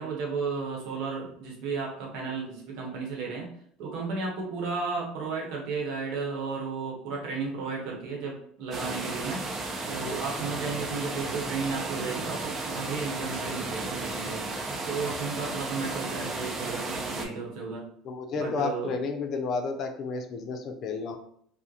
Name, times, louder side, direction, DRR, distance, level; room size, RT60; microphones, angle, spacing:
voice 1, 0.0-3.5 3.8-9.4 9.9-14.5 14.8-17.8 18.3-18.9, right 4 dB, 70° right, -1 dB, 0.8 m, -33 dB
sound 1, 8.7-17.3, right 2 dB, 40° right, 0.6 m, -34 dB
voice 2, 18.0-21.2, left 4 dB, 55° left, 6 dB, 0.4 m, -31 dB
2.3 x 2.0 x 2.7 m, 0.64 s
supercardioid pair, 85°, 0 cm